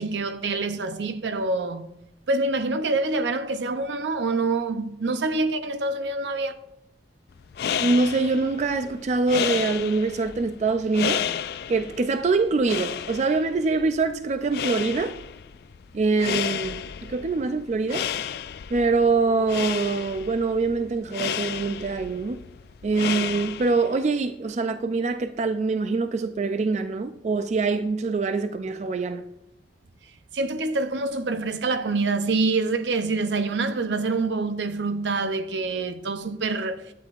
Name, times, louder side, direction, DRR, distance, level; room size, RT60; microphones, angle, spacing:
voice 1, 0.0-1.8 2.3-6.6 30.3-36.8, right 3 dB, 80° right, 0.6 m, -26 dB
sound 1, 7.4-24.0, left 8 dB, 60° left, 0.3 m, -32 dB
voice 2, 7.8-11.3 11.7-15.2 15.9-18.1 18.7-22.4 22.8-29.2, right 3 dB, 40° right, 0.3 m, -24 dB
12.0 x 8.6 x 2.4 m
head